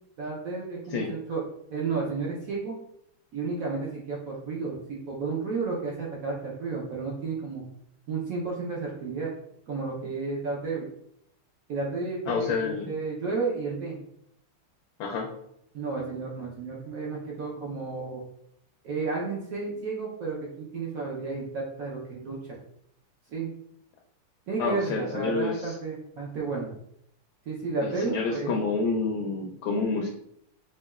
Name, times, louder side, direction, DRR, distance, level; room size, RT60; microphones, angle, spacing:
voice 1, 0.2-1.4 1.7-2.7 3.3-7.6 8.1-9.3 9.7-10.8 11.7-14.0 15.7-18.2 18.8-22.6 23.3-23.5 24.5-26.7 27.5-28.6, right 4 dB, 80° right, -4 dB, 0.7 m, -32 dB
voice 2, 12.3-12.9 15.0-15.3 24.6-25.7 27.8-30.1, left 4 dB, 75° left, 1 dB, 1.2 m, -28 dB
5.9 x 2.2 x 2.3 m, 0.73 s
omnidirectional pair, 2.4 m